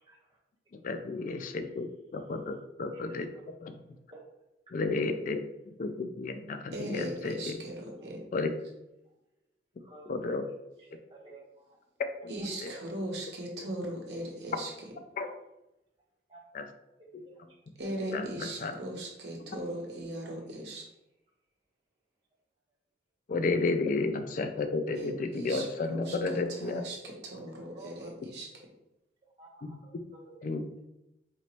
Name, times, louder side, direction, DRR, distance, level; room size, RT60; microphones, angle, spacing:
voice 1, 0.7-3.3 3.6-3.7 4.7-5.4 5.8-7.6 8.3-8.5 10.1-10.5 12.2-12.3 12.6-12.7 15.2-15.3 16.5-16.7 17.1-17.2 18.1-18.7 23.3-26.8 29.6-29.8 30.4-30.8, left 3 dB, 50° left, 8 dB, 0.3 m, -32 dB
voice 2, 6.7-8.2 12.3-14.7 17.8-20.9 25.0-25.6 25.9-28.5, right 1 dB, 70° right, -1 dB, 0.9 m, -38 dB
voice 3, 11.1-11.7 13.6-13.7 16.3-16.6 27.7-28.1 29.4-30.4, right 3 dB, 25° right, -4 dB, 1.1 m, -51 dB
4.5 x 3.0 x 2.9 m, 0.91 s
head